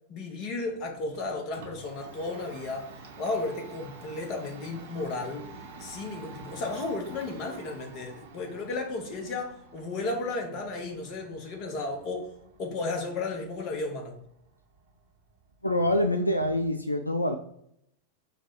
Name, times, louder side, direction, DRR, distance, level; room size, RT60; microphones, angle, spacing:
voice 1, 0.1-2.9 3.2-5.5 5.8-12.3 12.6-14.1, left 3 dB, 40° left, 3 dB, 1.0 m, -34 dB
Domestic sounds home sounds, 0.7-16.5, right 4 dB, 55° right, 0.8 m, -49 dB
voice 2, 15.6-17.4, left 1 dB, 85° left, 6 dB, 0.3 m, -25 dB
4.6 x 2.3 x 4.3 m, 0.72 s
figure-of-eight pair, 90°, 0 cm